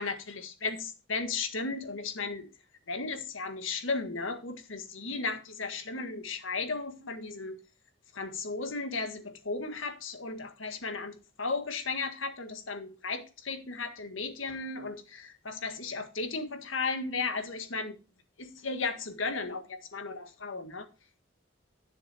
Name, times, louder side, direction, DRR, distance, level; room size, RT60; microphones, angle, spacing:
voice 1, 0.0-2.5 2.9-7.6 8.1-18.0 18.4-20.9, left 4 dB, 85° left, 1.7 m, -35 dB
10.5 x 7.0 x 4.3 m
head